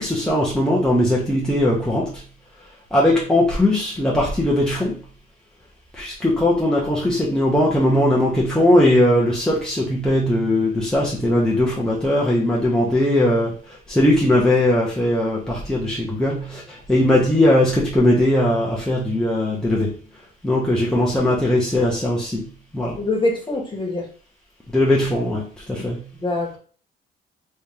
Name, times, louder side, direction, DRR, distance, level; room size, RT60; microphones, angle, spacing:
voice 1, 0.0-2.2 2.9-5.0 5.9-19.9 20.4-22.5 22.7-23.0 24.7-26.0, left 1 dB, 5° left, -5 dB, 1.0 m, -19 dB
voice 2, 23.0-24.1 25.8-25.9 26.2-26.6, left 2 dB, 25° left, -1 dB, 1.6 m, -24 dB
3.5 x 3.3 x 2.9 m, 0.41 s
cardioid pair, 90°, 20 cm